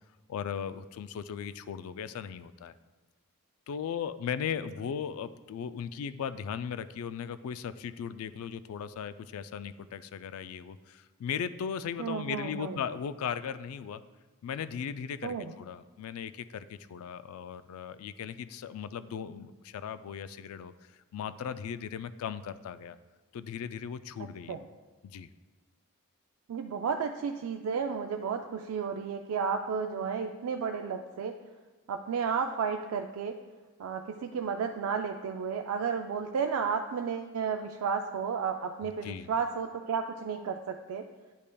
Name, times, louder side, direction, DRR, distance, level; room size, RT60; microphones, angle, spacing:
voice 1, 0.3-2.7 3.7-14.0 14.4-23.0 23.3-24.6 25.0-25.3 38.8-39.3, left 7 dB, 75° left, 14 dB, 0.3 m, -37 dB
voice 2, 12.0-12.8 15.2-15.5 24.5-24.6 26.5-31.3 31.9-33.3 33.8-41.0, right 6 dB, 80° right, 4 dB, 0.3 m, -32 dB
9.9 x 5.2 x 2.2 m, 1.3 s
head